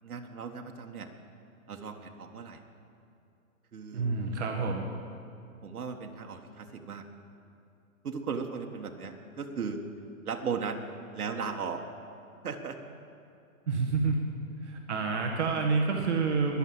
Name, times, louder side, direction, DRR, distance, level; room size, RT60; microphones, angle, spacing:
voice 1, 0.0-1.1 1.7-2.6 3.7-4.1 5.6-7.1 8.0-9.8 10.2-10.8 11.1-11.8 12.4-12.8, right 5 dB, 85° right, 3 dB, 1.6 m, -36 dB
voice 2, 3.9-4.8 13.7-14.2 14.6-16.6, right 4 dB, 50° right, 0 dB, 1.8 m, -28 dB
21.5 x 7.3 x 7.7 m, 2.7 s
hypercardioid pair, 165°, 43 cm